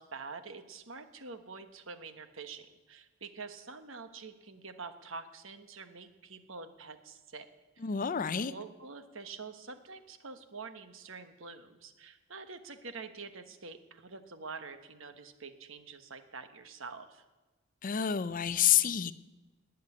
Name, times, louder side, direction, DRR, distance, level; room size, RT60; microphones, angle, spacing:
voice 1, 0.0-7.5 7.8-7.9 8.3-17.2, right 4 dB, 65° right, 1.3 m, -46 dB
voice 2, 7.8-8.5 17.8-19.1, left 9 dB, 40° left, 0.5 m, -28 dB
19.5 x 6.6 x 9.8 m
head